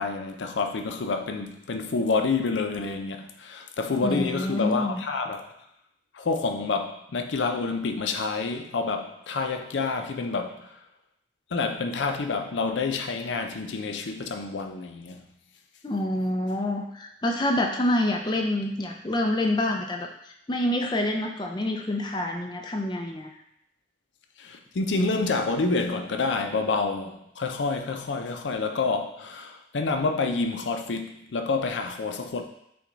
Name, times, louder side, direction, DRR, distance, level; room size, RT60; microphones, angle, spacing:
voice 1, 0.0-5.5 6.1-10.7 11.5-15.2 24.4-32.4, left 4 dB, 90° left, 5 dB, 0.5 m, -28 dB
voice 2, 4.0-5.0 15.8-20.1 20.5-23.3, left 1 dB, 25° left, 2 dB, 0.5 m, -27 dB
5.9 x 2.3 x 3.9 m, 0.78 s
head